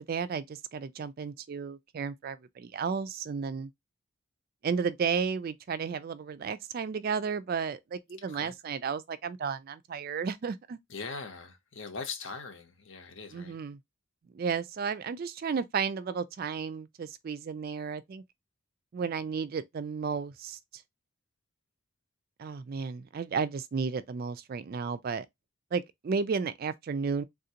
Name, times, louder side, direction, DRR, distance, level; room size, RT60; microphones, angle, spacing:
voice 1, 0.0-3.7 4.6-10.8 13.3-13.8 14.3-18.2 18.9-20.8 22.4-25.3 25.7-27.2, right 5 dB, 45° right, 0.3 m, -33 dB
voice 2, 8.2-8.5 10.9-13.6, left 4 dB, 60° left, 0.8 m, -41 dB
3.5 x 2.5 x 2.7 m
head